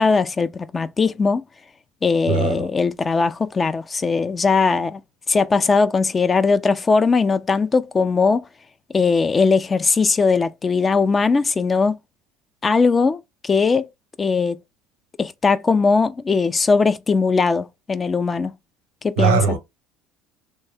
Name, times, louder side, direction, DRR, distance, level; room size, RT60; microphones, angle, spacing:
voice 1, 0.0-1.4 2.0-5.0 5.3-8.4 8.9-12.0 12.6-13.9 14.2-14.6 15.2-18.5 19.0-19.6, left 4 dB, 25° left, 0.4 m, -19 dB
voice 2, 2.3-2.7 19.2-19.6, right 6 dB, 70° right, 0.8 m, -19 dB
3.3 x 2.1 x 3.2 m
figure-of-eight pair, 65°, 0 cm